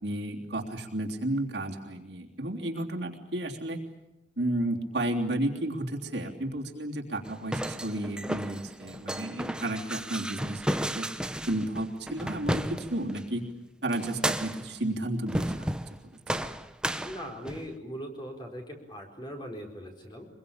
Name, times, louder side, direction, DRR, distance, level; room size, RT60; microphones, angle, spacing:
voice 1, 0.0-3.8 4.4-11.1 11.5-13.5 13.8-15.8, right 1 dB, 65° right, 0 dB, 3.4 m, -32 dB
sound 1, 7.2-13.2 13.9-14.8 15.3-16.0 16.3-17.7, right 1 dB, 5° right, 0.8 m, -33 dB
voice 2, 17.0-20.3, equal, 25° left, 1 dB, 4.5 m, -40 dB
24.5 x 22.5 x 8.8 m, 0.93 s
head